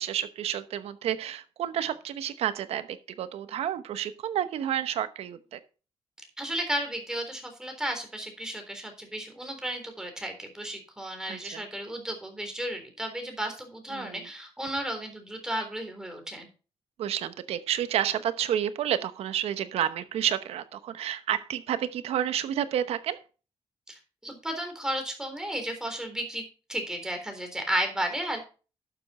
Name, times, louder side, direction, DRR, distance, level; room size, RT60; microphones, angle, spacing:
voice 1, 0.0-5.6 11.3-11.6 13.9-14.3 17.0-23.2, right 10 dB, 90° right, 12 dB, 1.0 m, -30 dB
voice 2, 6.4-16.5 23.9-26.4 26.7-28.4, right 1 dB, 5° right, 4 dB, 3.6 m, -33 dB
12.0 x 7.1 x 4.2 m, 0.35 s
cardioid pair, 120°, 10 cm